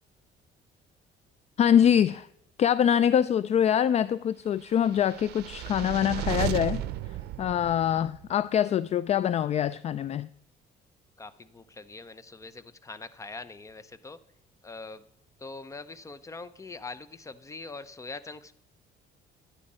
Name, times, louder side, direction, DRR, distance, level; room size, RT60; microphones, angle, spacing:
voice 1, 1.6-2.3 2.6-6.8 7.4-10.3, left 9 dB, 40° left, 0.3 m, -24 dB
sound 1, 4.9-8.3, right 13 dB, 75° right, 0.6 m, -34 dB
voice 2, 11.2-14.2 14.6-15.0 15.4-18.5, left 3 dB, 20° left, 0.7 m, -43 dB
11.5 x 9.7 x 5.5 m
cardioid pair, 110°, 17 cm